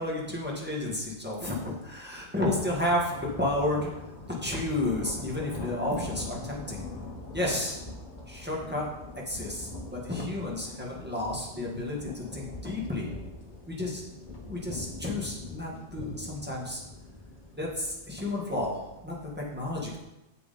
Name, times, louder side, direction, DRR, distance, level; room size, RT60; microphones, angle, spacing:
voice 1, 0.0-3.9 4.4-6.8 7.3-7.8 8.3-8.8 9.3-13.1 13.7-14.0 14.5-16.8 17.6-18.8 19.0-20.0, left 1 dB, 10° right, -5 dB, 1.8 m, -31 dB
sound 1, 1.2-1.4 1.7-19.0, left 2 dB, 45° left, 1.4 m, -43 dB
7.6 x 7.0 x 4.3 m, 0.94 s
omnidirectional pair, 1.2 m